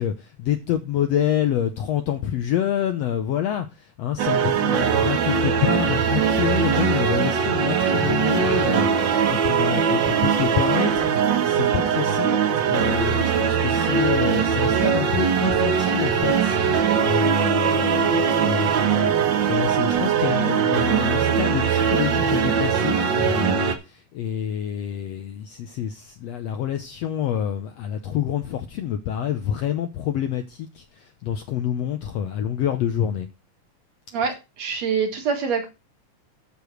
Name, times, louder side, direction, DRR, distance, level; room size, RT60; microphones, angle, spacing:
voice 1, 0.0-11.1 11.4-12.4 12.7-33.3, left 10 dB, 70° left, 1.6 m, -27 dB
sound 1, 4.2-23.7, right 7 dB, 90° right, 1.0 m, -21 dB
voice 2, 34.1-35.7, right 6 dB, 60° right, 2.8 m, -25 dB
8.3 x 6.8 x 6.1 m
omnidirectional pair, 3.8 m